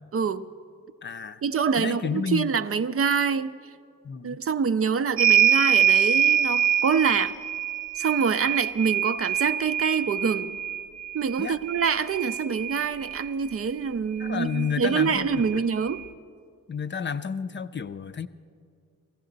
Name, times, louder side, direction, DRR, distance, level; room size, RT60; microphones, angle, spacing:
voice 1, 0.1-0.4 1.4-3.5 4.2-7.3 8.0-10.6 11.1-16.0, right 6 dB, 45° right, 0.5 m, -25 dB
voice 2, 1.0-1.4 1.8-2.5 4.0-4.4 11.4-11.6 14.2-15.7 16.7-18.3, left 6 dB, 35° left, 0.5 m, -31 dB
sound 1, 5.2-13.3 14.6-14.7 14.9-16.0, right 9 dB, 80° right, 0.8 m, -25 dB
16.5 x 15.0 x 3.9 m
cardioid pair, 60°, 33 cm